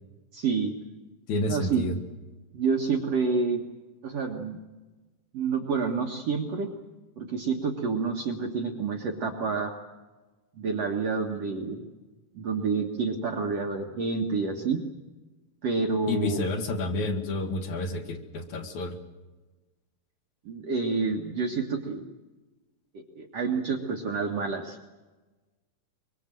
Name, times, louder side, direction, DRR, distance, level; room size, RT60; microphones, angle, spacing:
voice 1, 0.3-0.8 1.5-1.9 2.5-3.6 4.0-4.6 5.3-6.7 7.2-9.7 10.6-11.8 12.4-14.8 15.6-16.5 20.5-22.0 23.2-24.8, right 4 dB, 55° right, 1 dB, 2.3 m, -28 dB
voice 2, 1.3-2.0 16.1-19.0, left 2 dB, 60° left, 3 dB, 3.4 m, -30 dB
24.5 x 23.0 x 7.7 m, 1.2 s
omnidirectional pair, 4.0 m